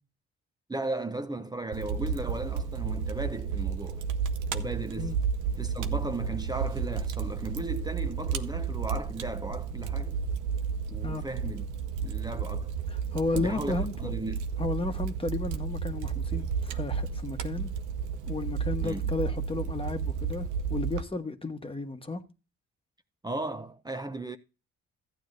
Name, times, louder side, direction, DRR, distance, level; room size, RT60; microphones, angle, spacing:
voice 1, 0.7-4.0 4.5-5.2 5.6-10.2 10.9-11.7 12.0-12.7 13.3-14.4 18.8-19.1 23.2-24.4, right 2 dB, 15° right, 0.6 m, -36 dB
Fire, 1.7-21.0, right 6 dB, 85° right, 0.7 m, -32 dB
voice 2, 12.9-14.1 14.6-17.7 18.3-22.2, left 3 dB, 20° left, 1.2 m, -33 dB
14.5 x 9.2 x 2.6 m
cardioid pair, 90°, 30 cm